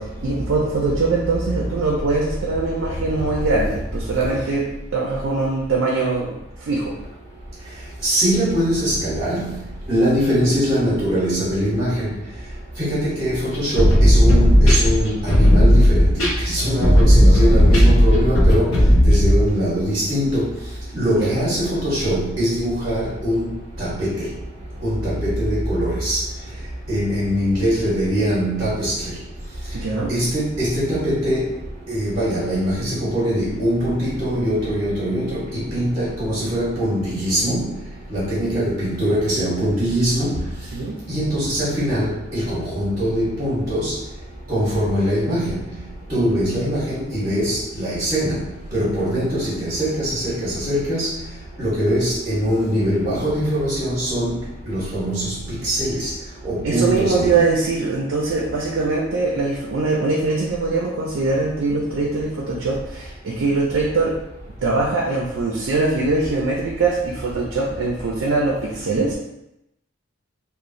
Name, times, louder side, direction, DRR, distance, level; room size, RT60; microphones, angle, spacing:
voice 1, 0.0-6.9 21.1-21.4 29.7-30.1 40.7-41.0 56.6-64.2 64.6-69.1, right 3 dB, 65° right, -2 dB, 0.4 m, -22 dB
voice 2, 8.0-9.5 9.9-12.1 12.8-16.1 16.4-18.8 19.0-20.5 20.9-24.3 24.8-26.2 26.9-28.9 30.1-31.5 31.9-37.7 38.1-40.4 41.1-43.9 44.5-45.6 46.1-48.4 48.7-51.1 51.6-54.4 54.7-55.3 55.6-56.1 56.4-57.4, equal, 30° right, -10 dB, 0.8 m, -22 dB
sound 1, 13.5-19.5, equal, 85° left, 0.6 m, -14 dB
2.9 x 2.0 x 2.5 m, 0.86 s
head